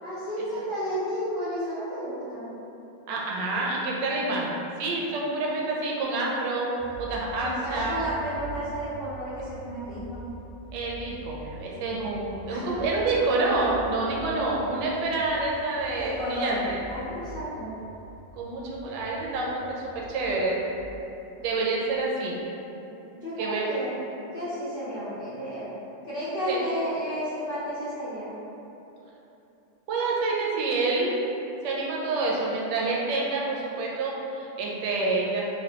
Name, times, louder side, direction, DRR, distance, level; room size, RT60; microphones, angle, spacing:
voice 1, 0.0-2.5 7.4-10.3 12.5-12.8 16.0-17.8 23.1-24.0 24.3-25.7 26.0-28.4, equal, 65° left, -13 dB, 0.5 m, -32 dB
voice 2, 3.1-6.7 7.0-8.0 10.7-16.8 18.4-20.6 21.4-22.4 23.4-23.7 26.5-26.6 29.9-31.3 31.6-35.4, right 3 dB, 80° right, -3 dB, 1.2 m, -28 dB
sound 1, 6.8-21.0, right 2 dB, 45° right, 0.7 m, -44 dB
3.2 x 2.6 x 2.8 m, 3.0 s
omnidirectional pair, 1.9 m